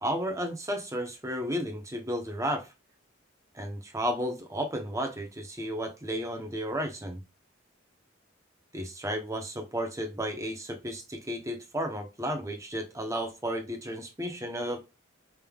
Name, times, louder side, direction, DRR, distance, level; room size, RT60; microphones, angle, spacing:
voice 1, 0.0-2.7 3.5-7.2 8.7-14.8, equal, 15° right, 0.9 m, -33 dB
5.2 x 3.6 x 2.3 m
head